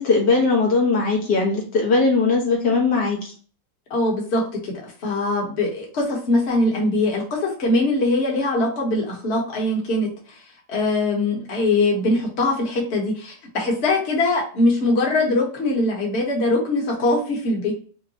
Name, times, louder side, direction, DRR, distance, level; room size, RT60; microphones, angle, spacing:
voice 1, 0.0-3.3, left 3 dB, 70° left, -1 dB, 1.6 m, -19 dB
voice 2, 3.9-4.7 5.0-10.4 10.7-17.7, left 2 dB, 40° left, -1 dB, 1.3 m, -22 dB
5.5 x 2.2 x 2.7 m, 0.42 s
omnidirectional pair, 2.0 m